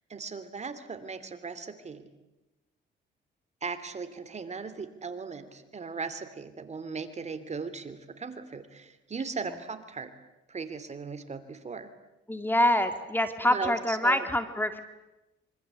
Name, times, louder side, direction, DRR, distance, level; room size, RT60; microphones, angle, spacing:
voice 1, 0.1-2.1 3.6-10.1 10.5-11.9 13.5-14.2, right 4 dB, 35° right, 11 dB, 2.9 m, -38 dB
voice 2, 12.3-14.8, left 1 dB, 10° left, 8 dB, 2.2 m, -25 dB
26.5 x 25.0 x 8.3 m, 0.98 s
cardioid pair, 90°, 20 cm